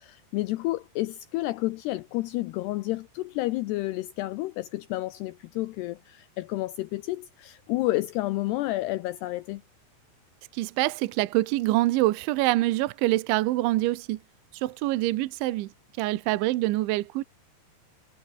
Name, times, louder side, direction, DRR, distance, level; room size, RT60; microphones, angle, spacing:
voice 1, 0.0-9.6, left 18 dB, 85° left, 2.3 m, -30 dB
voice 2, 10.5-14.2 14.5-15.7 16.0-17.2, right 17 dB, 80° right, 3.3 m, -25 dB
omnidirectional pair, 5.6 m